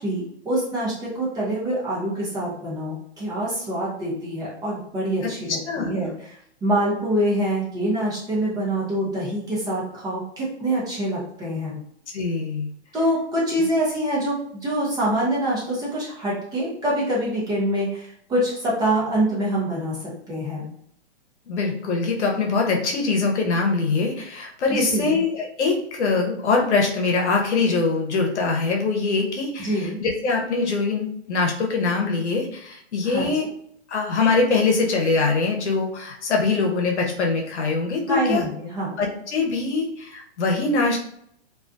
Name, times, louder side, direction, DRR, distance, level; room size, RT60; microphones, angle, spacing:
voice 1, 0.0-11.8 12.9-20.0 20.3-20.7 24.7-25.2 29.6-30.0 33.0-33.3 38.1-38.9, right 1 dB, 10° right, -7 dB, 0.6 m, -25 dB
voice 2, 12.1-12.7 13.6-13.7 21.5-33.5 33.9-38.4 39.0-41.0, left 4 dB, 75° left, 0 dB, 0.8 m, -23 dB
2.4 x 2.2 x 2.5 m, 0.69 s
hypercardioid pair, 135°, 34 cm